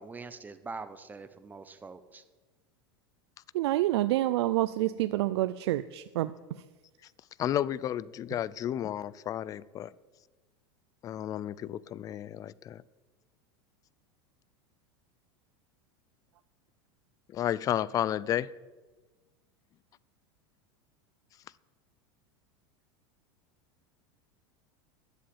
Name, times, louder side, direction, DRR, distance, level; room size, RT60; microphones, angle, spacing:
voice 1, 0.0-2.2, right 4 dB, 10° right, 11 dB, 0.8 m, -43 dB
voice 2, 3.5-6.3, right 15 dB, 80° right, 13 dB, 0.4 m, -27 dB
voice 3, 7.4-9.9 11.0-12.8 17.3-18.5, left 11 dB, 25° left, 21 dB, 0.3 m, -32 dB
11.5 x 7.4 x 8.6 m, 1.3 s
supercardioid pair, 130°, 14 cm